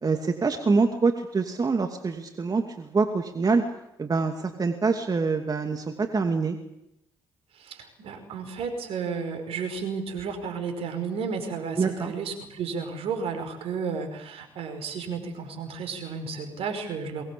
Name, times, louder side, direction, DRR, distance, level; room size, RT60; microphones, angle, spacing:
voice 1, 0.0-3.6 4.0-6.6 11.8-12.1, right 4 dB, 35° right, 5 dB, 2.6 m, -25 dB
voice 2, 7.6-17.2, right 5 dB, 70° right, 6 dB, 5.3 m, -33 dB
23.5 x 20.0 x 8.7 m, 0.83 s
hypercardioid pair, 50°, 11 cm